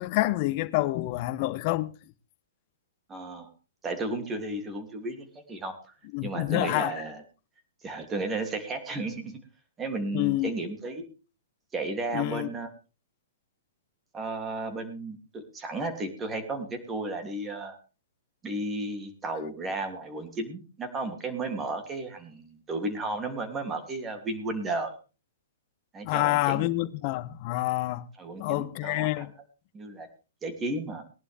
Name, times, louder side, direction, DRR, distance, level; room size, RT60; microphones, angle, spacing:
voice 1, 0.0-1.9 6.1-6.9 10.1-10.5 12.1-12.5 26.0-28.0 28.4-29.3, left 18 dB, 45° left, 1.0 m, -27 dB
voice 2, 3.1-3.5 3.8-5.7 6.2-7.2 7.8-9.4 9.8-11.0 11.7-12.7 14.1-17.8 18.4-24.9 25.9-26.7 28.2-29.3 29.7-30.1 30.4-31.0, right 2 dB, 20° right, 3.0 m, -33 dB
19.0 x 11.0 x 3.6 m
hypercardioid pair, 130°, 0 cm